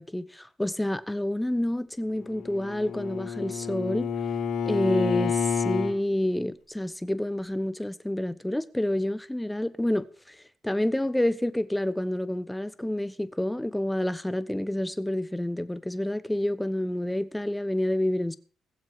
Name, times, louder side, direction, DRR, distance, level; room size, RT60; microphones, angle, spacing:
voice 1, 0.0-4.1 4.7-10.4 10.6-18.4, left 1 dB, 5° left, 1.0 m, -28 dB
Bowed string instrument, 2.2-6.0, left 6 dB, 75° left, 2.7 m, -29 dB
20.5 x 7.4 x 4.8 m
cardioid pair, 90°, 0 cm